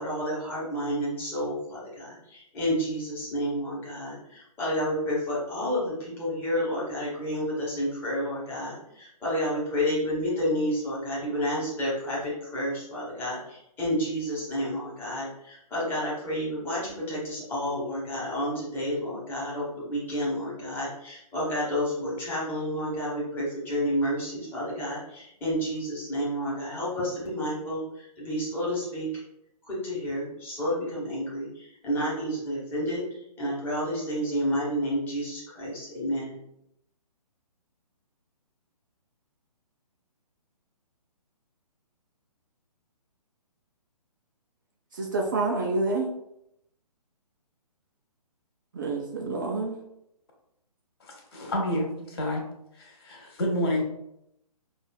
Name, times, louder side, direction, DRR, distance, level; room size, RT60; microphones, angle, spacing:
voice 1, 0.0-29.1 29.6-36.4, equal, 10° left, -6 dB, 1.1 m, -30 dB
voice 2, 44.9-46.1 48.7-49.8, right 3 dB, 30° right, 0 dB, 0.4 m, -28 dB
voice 3, 51.0-52.4 52.7-53.8, left 1 dB, 40° left, 0 dB, 1.1 m, -29 dB
5.5 x 2.5 x 2.2 m, 0.79 s
figure-of-eight pair, 135°, 20 cm